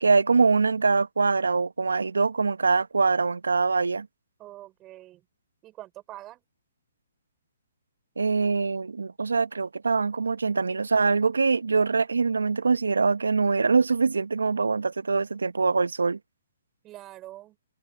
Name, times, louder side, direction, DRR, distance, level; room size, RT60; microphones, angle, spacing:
voice 1, 0.0-4.1 8.2-16.2, right 4 dB, 80° right, 1.2 m, -23 dB
voice 2, 4.4-5.2 5.6-6.4 16.8-17.6, right 15 dB, 25° right, 5.8 m, -44 dB
figure-of-eight pair, 130°, 0 cm